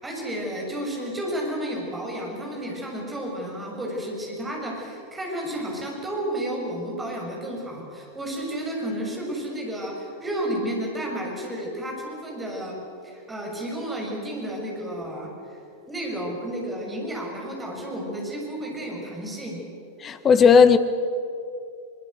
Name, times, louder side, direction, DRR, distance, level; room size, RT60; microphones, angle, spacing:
voice 1, 0.0-15.6 15.9-19.6, right 1 dB, 10° right, -1 dB, 6.9 m, -32 dB
voice 2, 20.0-20.8, left 6 dB, 25° left, 12 dB, 1.3 m, -15 dB
23.0 x 22.5 x 8.0 m, 2.6 s
figure-of-eight pair, 90°, 0 cm